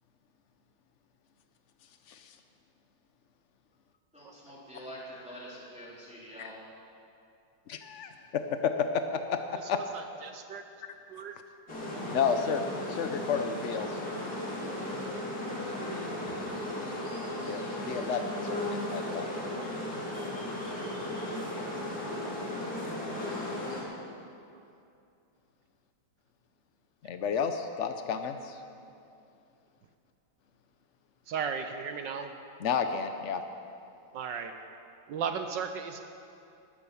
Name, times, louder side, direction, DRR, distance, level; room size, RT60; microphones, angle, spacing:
voice 1, 4.1-6.6, equal, 5° right, -7 dB, 3.6 m, -45 dB
voice 2, 7.7-9.0 9.3-9.8 12.1-14.0 17.4-19.3 27.0-28.6 32.6-33.4, left 6 dB, 85° left, 7 dB, 0.6 m, -31 dB
voice 3, 9.6-10.6 11.1-11.4 31.3-32.3 34.1-34.5 35.1-36.0, right 6 dB, 70° right, 7 dB, 1.3 m, -35 dB
sound 1, 11.7-23.8, left 1 dB, 40° left, 3.5 m, -35 dB
19.0 x 9.9 x 7.1 m, 2.6 s
omnidirectional pair, 2.2 m